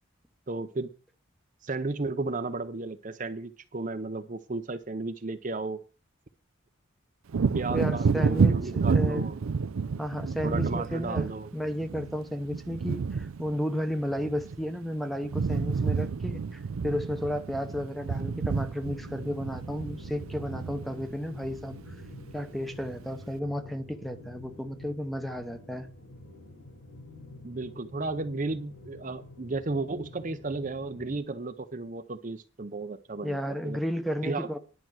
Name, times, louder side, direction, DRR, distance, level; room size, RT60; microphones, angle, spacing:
voice 1, 0.5-0.9 1.6-5.8 7.5-9.4 10.4-11.5 27.4-33.8 34.2-34.5, right 3 dB, 40° right, 0.6 m, -34 dB
Wind / Thunder, 7.3-14.9 15.1-22.4 22.8-23.0, right 5 dB, 80° right, 0.5 m, -30 dB
voice 2, 7.7-9.3 10.0-21.8 22.3-25.9 33.2-34.6, equal, ahead, 0.9 m, -33 dB
sound 1, 18.8-31.2, left 1 dB, 55° left, 5.2 m, -48 dB
11.0 x 6.0 x 7.7 m
head